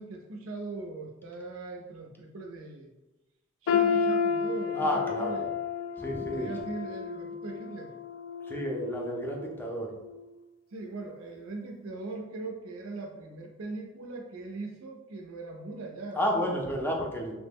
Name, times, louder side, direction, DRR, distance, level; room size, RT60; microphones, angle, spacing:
voice 1, 0.0-2.9 3.6-5.5 6.2-7.9 10.7-16.2, right 3 dB, 85° right, 1 dB, 0.4 m, -40 dB
sound 1, 3.7-9.6 10.0-10.2 11.0-11.1, left 6 dB, 75° left, 0.3 m, -31 dB
voice 2, 4.7-5.4 6.0-6.5 8.4-9.9 16.1-17.3, equal, 10° left, -1 dB, 0.4 m, -31 dB
3.0 x 2.0 x 3.4 m, 1.0 s
head